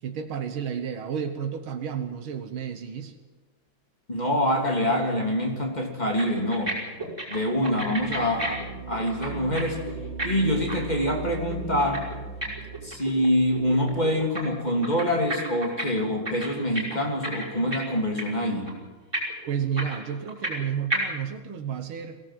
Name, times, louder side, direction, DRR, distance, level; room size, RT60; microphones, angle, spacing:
voice 1, 0.0-3.2 19.5-22.2, right 8 dB, 85° right, 7 dB, 2.0 m, -31 dB
voice 2, 4.1-6.7 7.3-8.6 8.9-9.8 10.2-12.0 12.8-18.7, equal, 20° left, 1 dB, 3.1 m, -25 dB
sound 1, 5.9-6.0 6.2-6.7 7.0-9.6 9.9-13.3 13.5-14.4 14.7-15.8 16.1-17.9 18.2-18.4 18.7-18.8 19.1-20.6 20.9-21.0, right 2 dB, 10° right, 5.5 m, -31 dB
sound 2, 7.4-14.6, right 3 dB, 55° left, 5.3 m, -38 dB
22.0 x 17.0 x 7.6 m, 1.3 s
omnidirectional pair, 2.2 m